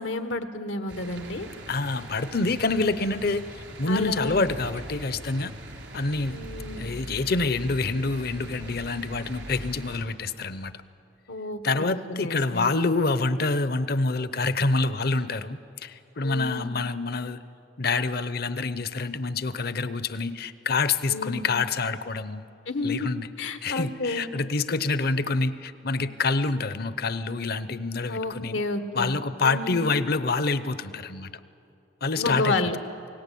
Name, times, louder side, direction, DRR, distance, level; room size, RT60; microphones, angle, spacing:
voice 1, 0.0-1.5 3.9-4.3 6.3-6.9 11.3-12.7 16.2-16.7 21.1-21.6 22.7-23.1 23.4-24.3 28.1-29.2 29.4-29.8 32.1-32.8, left 2 dB, 85° left, 8 dB, 1.5 m, -30 dB
sound 1, 0.9-10.0, right 1 dB, 85° right, 4.6 m, -41 dB
voice 2, 1.7-5.5 5.9-6.4 6.8-10.7 11.6-17.4 17.8-22.4 22.8-23.3 23.6-28.6 28.9-31.3 32.0-32.6, left 3 dB, 55° left, 14 dB, 0.8 m, -27 dB
28.5 x 18.5 x 8.5 m, 2.7 s
head